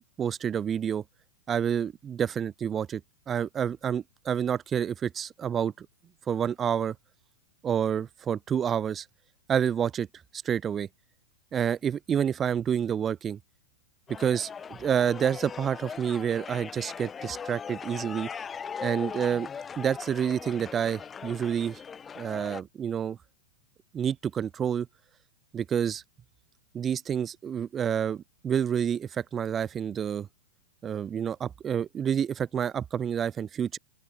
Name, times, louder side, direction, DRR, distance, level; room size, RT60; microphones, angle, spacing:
voice 1, 0.2-1.0 1.5-3.0 3.3-5.9 6.3-7.0 7.6-9.1 9.5-10.1 10.4-10.9 11.5-13.4 14.2-18.5 18.8-19.5 19.8-21.8 22.2-23.2 23.9-24.9 25.5-26.0 26.7-30.3 30.8-33.8, right 8 dB, 20° right, 3.7 m, -28 dB
sound 1, 14.1-22.6, left 6 dB, 20° left, 2.0 m, -40 dB
open air
figure-of-eight pair, 105°, 0 cm